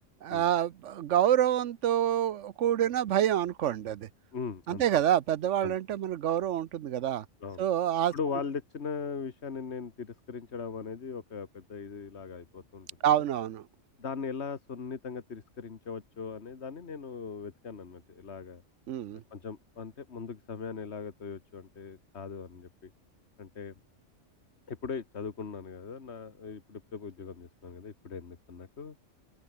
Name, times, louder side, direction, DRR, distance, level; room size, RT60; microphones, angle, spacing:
voice 1, 0.2-4.1 4.7-7.2 7.6-8.1 13.0-13.6 18.9-19.2, right 11 dB, 75° right, 1.0 m, -27 dB
voice 2, 4.3-4.8 5.6-5.8 7.4-7.6 8.1-13.1 14.0-18.6 19.3-22.9 23.4-23.7 24.7-29.0, left 5 dB, 60° left, 1.9 m, -39 dB
open air
omnidirectional pair, 1.3 m